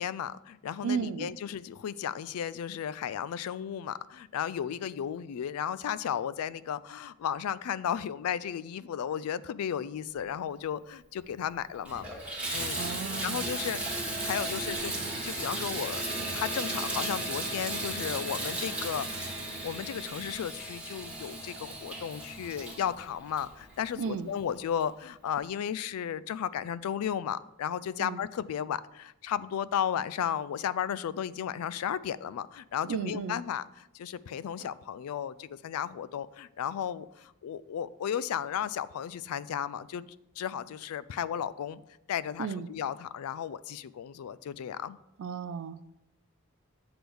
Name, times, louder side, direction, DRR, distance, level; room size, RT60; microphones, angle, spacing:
voice 1, 0.0-12.1 12.5-12.8 13.2-19.2 19.6-33.7 33.9-40.1 40.4-41.8 42.1-45.0, left 9 dB, 80° left, 0.3 m, -34 dB
voice 2, 0.8-1.4 12.8-13.4 24.0-24.3 28.0-28.2 32.9-33.4 42.4-42.7 45.2-45.9, right 6 dB, 60° right, 0.3 m, -34 dB
Water tap faucet / Bathtub (filling or washing), 11.2-11.3 11.7-24.1 24.8-24.9 25.4-25.5, right 2 dB, 5° right, 1.5 m, -36 dB
sound 1, 12.9-20.2, right 1 dB, 60° left, 1.1 m, -48 dB
sound 2, 16.0-22.4, left 3 dB, 10° left, 1.0 m, -48 dB
7.8 x 3.4 x 6.1 m
head